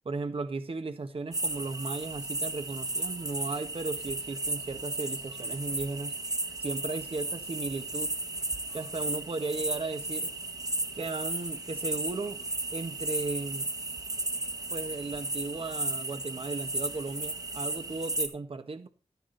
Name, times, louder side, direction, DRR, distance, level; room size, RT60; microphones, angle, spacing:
voice 1, 0.1-6.1 6.6-8.2 8.7-10.3 10.9-12.4 12.7-13.7 14.7-18.9, right 3 dB, 55° right, 1.7 m, -36 dB
sound 1, 1.3-18.3, right 2 dB, 30° right, 1.8 m, -34 dB
12.5 x 10.0 x 4.2 m
wide cardioid pair, 65°, 11 cm